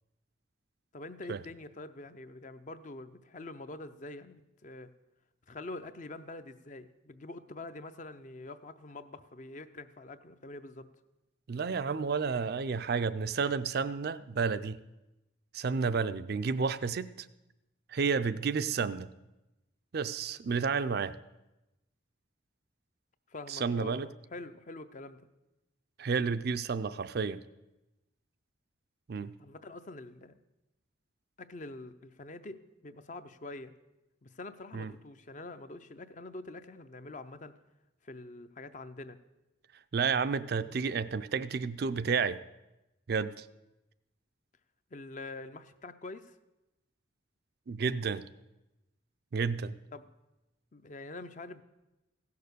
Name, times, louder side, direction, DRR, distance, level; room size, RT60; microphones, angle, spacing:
voice 1, 0.9-4.9 5.5-10.9 23.3-24.0 24.3-25.3 29.4-30.4 31.4-33.7 34.2-37.5 38.0-39.2 44.9-46.4 49.9-50.1 50.7-51.6, left 2 dB, 40° left, 11 dB, 0.5 m, -45 dB
voice 2, 11.5-14.8 15.5-17.3 17.9-19.1 19.9-21.2 23.5-24.1 26.0-27.4 29.1-29.3 34.7-34.9 39.9-42.4 43.1-43.4 47.7-48.2 49.3-49.7, right 5 dB, 50° right, 12 dB, 0.4 m, -31 dB
16.0 x 6.7 x 6.7 m, 0.99 s
head